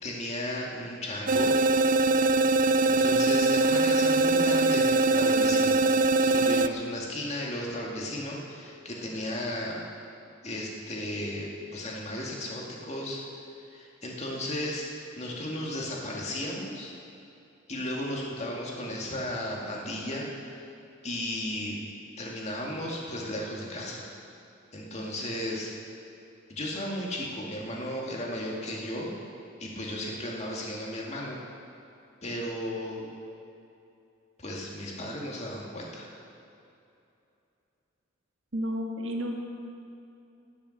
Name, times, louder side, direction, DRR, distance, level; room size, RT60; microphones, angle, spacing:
voice 1, 0.0-1.5 2.9-5.8 6.2-9.8 10.4-13.2 13.7-14.9 15.2-16.9 17.7-20.5 21.0-21.8 22.2-24.1 24.7-25.7 26.5-29.1 29.6-31.4 32.2-33.1 34.4-36.1, left 1 dB, 35° left, -2 dB, 2.1 m, -35 dB
sound 1, 1.3-6.7, right 3 dB, 45° right, 0.4 m, -22 dB
voice 2, 38.5-39.3, equal, 75° right, 1 dB, 1.7 m, -31 dB
19.0 x 7.1 x 6.5 m, 2.7 s
head